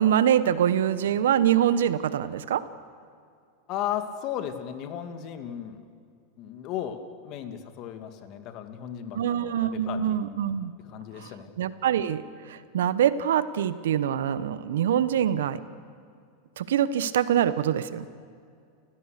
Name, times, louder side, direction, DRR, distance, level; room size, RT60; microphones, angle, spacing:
voice 1, 0.0-2.6 9.1-10.7 11.2-11.3 11.6-15.6 16.6-18.1, right 10 dB, 75° right, 15 dB, 1.0 m, -24 dB
voice 2, 3.7-5.8 6.4-10.2 10.8-11.5, left 10 dB, 50° left, 7 dB, 2.3 m, -35 dB
30.0 x 15.5 x 6.7 m, 2.4 s
hypercardioid pair, 100°, 0 cm